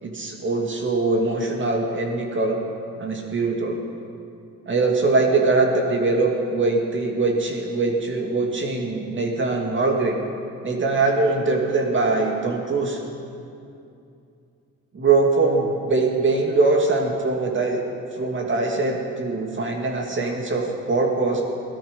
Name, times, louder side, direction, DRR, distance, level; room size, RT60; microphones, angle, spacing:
voice 1, 0.0-2.6 3.0-3.8 4.7-10.2 10.6-13.0 14.9-17.8 18.2-21.4, right 3 dB, 40° right, 1 dB, 2.4 m, -22 dB
17.0 x 12.5 x 5.4 m, 2.5 s
cardioid pair, 90°, 30 cm